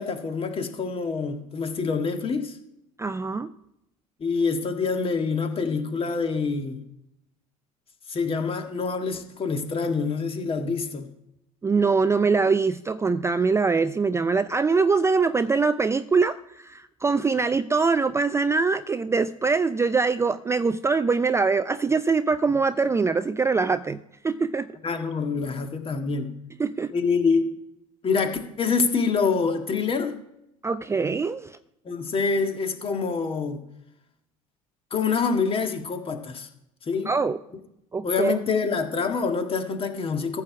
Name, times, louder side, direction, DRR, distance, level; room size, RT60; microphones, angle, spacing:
voice 1, 0.0-2.6 4.2-6.8 8.1-11.1 24.8-26.3 26.9-27.5 28.0-30.2 31.9-33.6 34.9-36.5 36.8-37.1 38.0-40.4, left 5 dB, 30° left, 6 dB, 1.8 m, -26 dB
voice 2, 3.0-3.5 11.6-24.7 26.6-26.9 30.6-31.6 37.1-37.4 37.9-38.4, right 4 dB, 15° right, 12 dB, 0.4 m, -23 dB
14.5 x 4.8 x 7.1 m, 0.82 s
hypercardioid pair, 70°, 18 cm